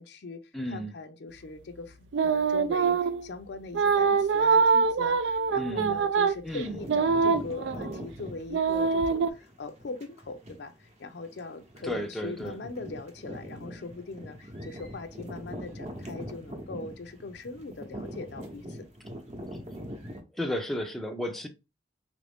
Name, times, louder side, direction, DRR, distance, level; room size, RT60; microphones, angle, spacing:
voice 1, 0.0-2.0 2.2-18.9, left 3 dB, 65° left, 0.5 m, -41 dB
voice 2, 0.5-0.9 5.6-6.0 6.4-6.8 11.8-12.6 20.3-21.5, equal, ahead, 0.4 m, -33 dB
sound 1, 2.1-3.2 3.7-8.0 8.5-9.3, right 5 dB, 80° right, 0.4 m, -24 dB
sound 2, 6.6-20.2, equal, 35° right, 0.8 m, -42 dB
3.4 x 2.5 x 3.4 m
head